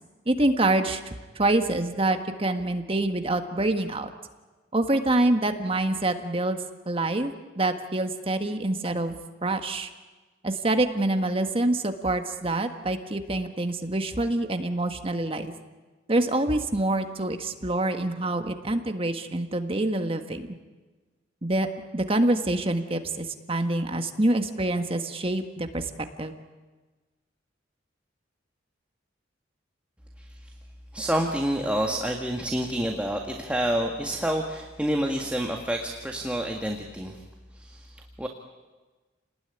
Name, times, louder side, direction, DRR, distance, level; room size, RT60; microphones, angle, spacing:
voice 1, 0.3-4.1 4.7-6.6 6.9-9.2 9.4-9.9 10.4-15.5 16.1-20.5 21.4-21.7 21.9-25.8 26.2-26.3, right 2 dB, 30° right, 6 dB, 1.6 m, -26 dB
voice 2, 30.2-30.5 30.9-37.2 37.5-38.3, right 1 dB, 5° right, 2 dB, 1.8 m, -28 dB
29.5 x 19.5 x 9.9 m, 1.3 s
head